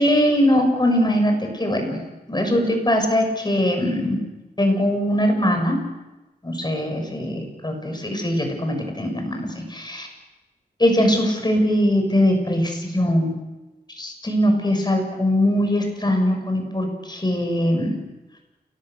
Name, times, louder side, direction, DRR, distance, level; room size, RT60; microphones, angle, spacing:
voice 1, 0.0-2.0 2.3-4.2 4.6-5.8 6.4-10.1 10.8-13.3 13.9-17.9, equal, 25° left, 3 dB, 6.8 m, -21 dB
29.0 x 19.5 x 6.8 m, 1.1 s
wide cardioid pair, 70°, 16 cm